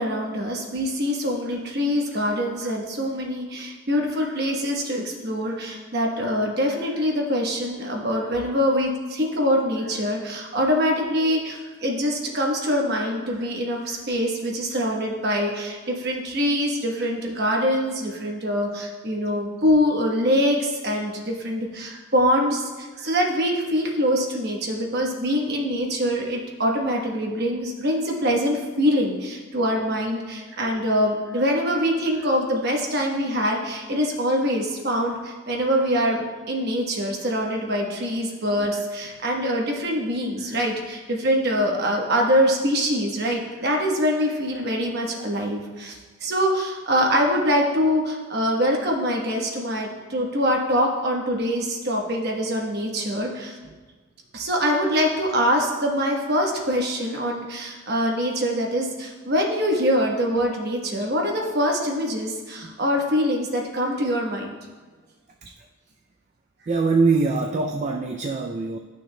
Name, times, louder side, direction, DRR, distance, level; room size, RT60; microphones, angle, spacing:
voice 1, 0.0-53.6 54.3-64.5, equal, 50° right, 0 dB, 1.1 m, -24 dB
voice 2, 66.7-68.8, right 4 dB, 35° right, 3 dB, 0.3 m, -23 dB
11.5 x 6.3 x 2.2 m, 1.4 s
head